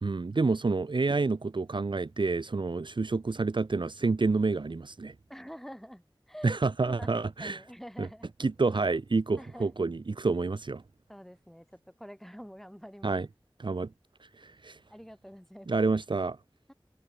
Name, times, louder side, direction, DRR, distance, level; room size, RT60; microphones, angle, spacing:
voice 1, 0.0-5.1 6.4-7.6 8.0-8.1 8.4-10.8 13.0-13.3 13.6-13.9 14.4-14.8 15.7-16.4, right 3 dB, 65° right, 0.6 m, -28 dB
voice 2, 5.3-8.3 9.4-9.8 11.1-13.2 14.9-15.9 16.7-16.8, equal, 5° left, 3.9 m, -47 dB
wide cardioid pair, 40°, 9 cm